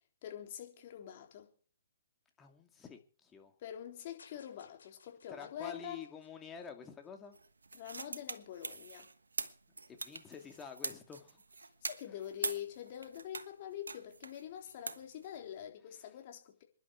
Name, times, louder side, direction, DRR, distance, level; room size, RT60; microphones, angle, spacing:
voice 1, 0.2-1.5 3.6-6.0 7.7-9.1 11.8-16.6, left 10 dB, 45° left, 3.7 m, -45 dB
voice 2, 2.4-3.6 5.3-7.4 9.9-11.4, left 6 dB, 15° left, 2.5 m, -49 dB
sound 1, 4.2-7.5, left 5 dB, 70° left, 5.3 m, -64 dB
sound 2, 7.3-13.5 13.9-15.6, right 3 dB, 80° right, 1.3 m, -43 dB
26.5 x 11.0 x 4.6 m
figure-of-eight pair, 130°, 0 cm